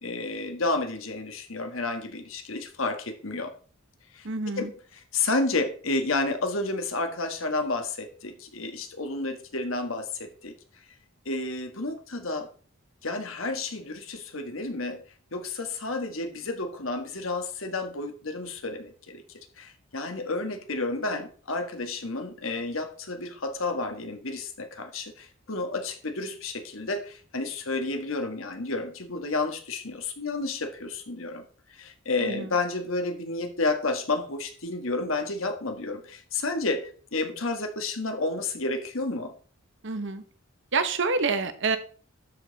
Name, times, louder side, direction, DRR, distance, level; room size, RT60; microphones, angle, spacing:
voice 1, 0.0-3.5 4.1-4.3 4.6-4.7 4.9-10.5 11.2-12.5 13.0-15.0 15.3-31.4 31.7-39.3, left 3 dB, 70° left, 6 dB, 1.6 m, -31 dB
voice 2, 4.2-4.7 32.2-32.5 39.8-40.2 40.7-41.8, right 4 dB, 60° right, 10 dB, 1.0 m, -27 dB
12.5 x 5.5 x 4.0 m, 0.41 s
head